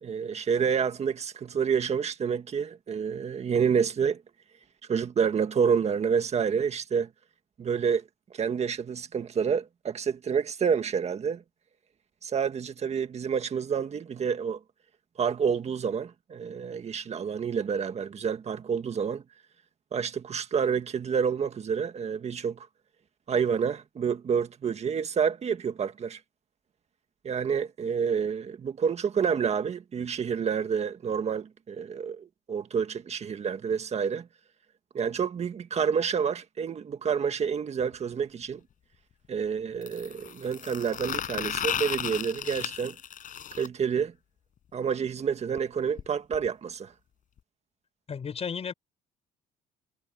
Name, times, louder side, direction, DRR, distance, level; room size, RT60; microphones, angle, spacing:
voice 1, 0.0-4.2 4.9-7.1 7.6-8.0 8.3-11.4 12.2-14.6 15.2-19.2 19.9-22.7 23.3-26.2 27.2-34.3 34.9-38.6 39.3-43.0 43.5-44.1 44.7-46.9, right 6 dB, 40° right, 1.8 m, -28 dB
sound 1, 37.8-37.9 39.8-43.7 45.6-45.7 46.0-46.1 46.3-46.5 47.4-47.5, left 9 dB, 50° left, 5.5 m, -34 dB
voice 2, 48.1-48.7, left 6 dB, 35° left, 5.7 m, -33 dB
cardioid pair, 110°, 17 cm